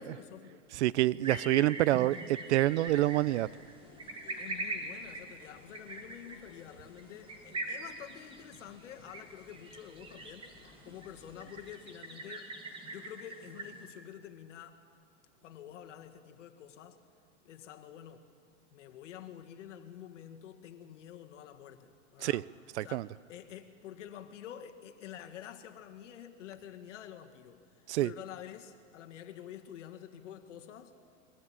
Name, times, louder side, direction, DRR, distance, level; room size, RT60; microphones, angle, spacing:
voice 1, 0.0-0.6 4.4-12.5 12.8-14.8 15.4-17.0 17.5-18.3 18.7-22.5 22.8-30.9, left 10 dB, 70° left, 6 dB, 1.9 m, -48 dB
voice 2, 0.7-3.5 22.2-22.4 22.8-23.1 27.9-28.1, right 16 dB, 60° right, 22 dB, 0.5 m, -27 dB
sound 1, 1.2-13.9, right 2 dB, 15° right, 1.9 m, -43 dB
sound 2, 2.6-11.7, left 5 dB, 35° left, 3.8 m, -60 dB
22.5 x 15.0 x 8.8 m, 2.1 s
supercardioid pair, 155°, 38 cm